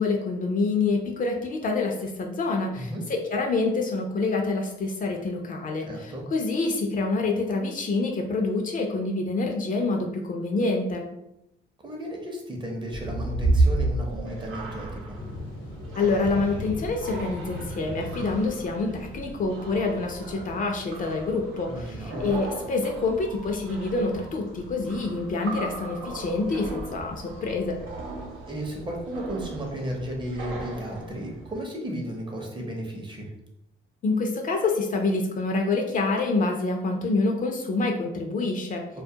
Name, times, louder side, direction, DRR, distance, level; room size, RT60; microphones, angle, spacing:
voice 1, 0.0-11.1 16.0-27.8 34.0-38.9, left 3 dB, 45° left, 2 dB, 0.4 m, -27 dB
voice 2, 5.8-6.2 11.8-15.2 21.7-22.2 28.5-33.3, right 1 dB, 25° right, 0 dB, 0.6 m, -34 dB
sound 1, 12.9-31.6, right 2 dB, 85° right, 0.6 m, -33 dB
sound 2, 15.1-28.4, left 2 dB, 75° left, 0.8 m, -43 dB
2.2 x 2.1 x 2.7 m, 0.83 s
cardioid pair, 90°, 20 cm